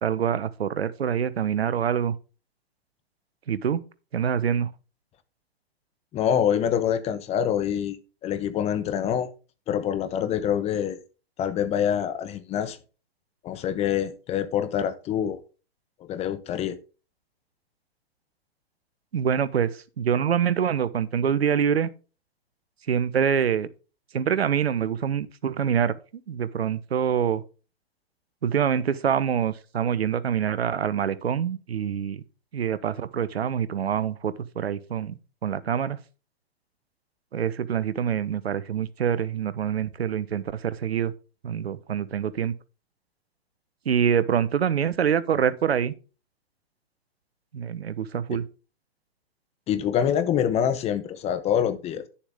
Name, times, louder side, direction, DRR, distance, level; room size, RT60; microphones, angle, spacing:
voice 1, 0.0-2.2 3.5-3.8 4.1-4.7 19.1-21.9 22.9-23.7 24.1-25.9 26.3-27.4 28.4-32.2 32.5-36.0 37.3-41.1 41.4-42.5 43.8-45.9 47.5-48.4, right 8 dB, 80° right, 1.0 m, -25 dB
voice 2, 6.1-8.0 8.2-9.3 9.7-11.0 11.4-12.8 13.4-15.4 16.1-16.8 48.3-48.4 49.7-52.0, left 9 dB, 20° left, 0.8 m, -25 dB
11.5 x 7.1 x 3.5 m
hypercardioid pair, 130°, 31 cm